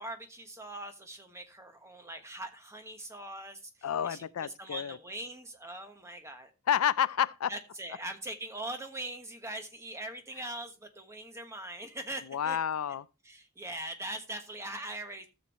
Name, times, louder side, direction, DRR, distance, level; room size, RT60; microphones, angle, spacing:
voice 1, 0.0-6.5 7.5-12.6 13.2-15.3, right 1 dB, 15° right, 1.2 m, -41 dB
voice 2, 3.8-5.0 6.7-7.5 12.3-13.0, left 9 dB, 80° left, 0.4 m, -29 dB
13.5 x 7.1 x 3.0 m
head